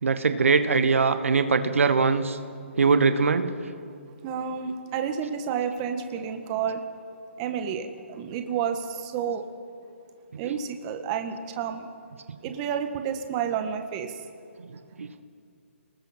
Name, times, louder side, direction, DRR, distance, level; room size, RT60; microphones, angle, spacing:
voice 1, 0.0-2.4 2.8-3.5 10.4-10.6 15.0-15.2, right 4 dB, 70° right, 10 dB, 1.3 m, -22 dB
voice 2, 4.2-6.8 7.4-9.4 10.4-11.9 12.4-14.1, right 7 dB, 30° right, 6 dB, 1.6 m, -30 dB
29.0 x 20.0 x 4.5 m, 2.3 s
hypercardioid pair, 145°, 7 cm